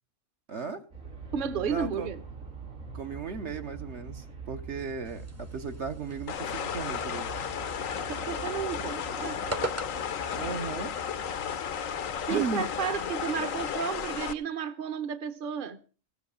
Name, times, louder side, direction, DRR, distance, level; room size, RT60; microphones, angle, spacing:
voice 1, 0.5-0.9 1.6-2.1 2.9-7.5 10.3-10.9 12.3-12.7, right 5 dB, 65° right, 1.2 m, -36 dB
Aircraft, 0.9-13.7, right 4 dB, 90° right, 3.0 m, -45 dB
voice 2, 1.3-2.2 8.0-9.6 12.3-15.8, right 7 dB, 45° right, 1.0 m, -33 dB
sound 1, 5.0-14.2, right 2 dB, 15° right, 0.6 m, -44 dB
sound 2, 6.3-14.3, left 8 dB, 85° left, 1.3 m, -34 dB
16.5 x 8.2 x 6.8 m
omnidirectional pair, 1.3 m